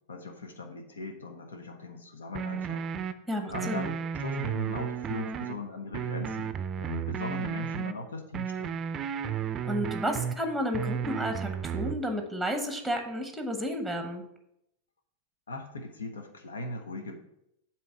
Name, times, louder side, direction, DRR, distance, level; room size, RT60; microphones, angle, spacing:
voice 1, 0.1-2.9 3.4-8.7 15.5-17.2, left 2 dB, 80° left, 5 dB, 0.9 m, -39 dB
sound 1, 2.3-3.1 3.5-5.5 5.9-7.9 8.3-10.3 10.7-11.9, right 7 dB, 30° right, 0.4 m, -33 dB
voice 2, 3.3-3.9 9.7-14.2, equal, ahead, 5 dB, 1.0 m, -32 dB
7.7 x 3.1 x 6.0 m, 0.80 s
figure-of-eight pair, 95°, 0 cm